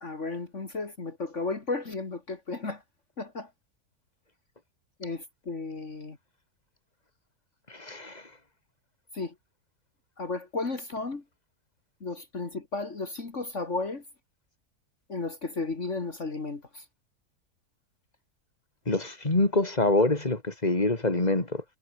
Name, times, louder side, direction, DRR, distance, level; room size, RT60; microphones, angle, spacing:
voice 1, 0.0-2.8 3.2-3.5 5.0-6.2 9.1-9.3 10.2-11.2 12.0-14.0 15.1-16.8, left 3 dB, 50° left, 2.8 m, -34 dB
voice 2, 7.7-8.2 18.9-21.6, left 2 dB, 25° left, 3.0 m, -25 dB
omnidirectional pair, 1.7 m